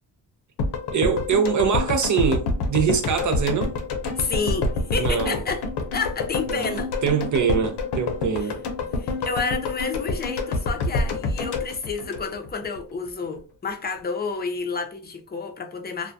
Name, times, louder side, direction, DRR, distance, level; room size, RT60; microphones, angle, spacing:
sound 1, 0.6-12.8 13.1-13.2, left 3 dB, 75° left, 0.6 m, -27 dB
voice 1, 0.9-3.7 5.0-5.4 6.5-8.6, right 6 dB, 45° right, 0.5 m, -23 dB
voice 2, 4.2-5.6 5.9-6.9 8.4-8.5 9.0-16.1, left 5 dB, 25° left, 0.5 m, -30 dB
2.2 x 2.2 x 2.6 m
cardioid pair, 65°, 41 cm